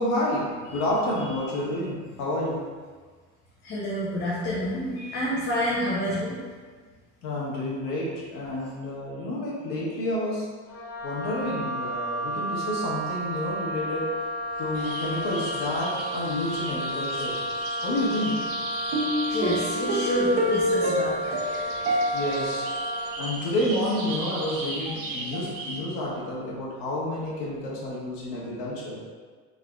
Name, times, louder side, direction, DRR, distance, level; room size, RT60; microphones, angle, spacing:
voice 1, 0.0-2.6 7.2-10.5 11.0-14.1 14.6-17.4 17.8-18.4 22.1-22.7 23.2-29.0, left 1 dB, 85° left, -6 dB, 1.5 m, -29 dB
voice 2, 3.6-6.4 16.8-17.4 19.3-21.4, left 1 dB, 35° left, -7 dB, 0.8 m, -29 dB
Wind instrument woodwind instrument, 10.7-23.2, equal, 70° left, 1.4 m, -32 dB
sound 1, 14.7-25.8, right 1 dB, 75° right, 0.9 m, -31 dB
5.0 x 3.9 x 2.4 m, 1.5 s
cardioid pair, 155°, 32 cm